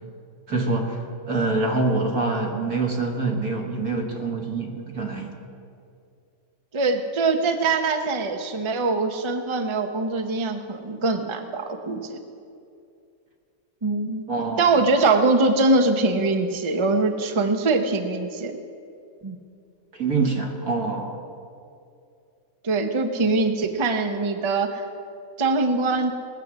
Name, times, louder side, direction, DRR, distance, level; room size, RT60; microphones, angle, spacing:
voice 1, 0.5-1.0 1.3-5.4 14.3-14.7 19.9-21.1, right 3 dB, 85° right, 0 dB, 2.2 m, -25 dB
voice 2, 6.7-12.2 13.8-14.2 14.6-18.6 19.2-19.4 22.6-24.8 25.4-26.1, right 3 dB, 25° right, 6 dB, 0.7 m, -23 dB
19.5 x 7.5 x 6.2 m, 2.4 s
omnidirectional pair, 1.5 m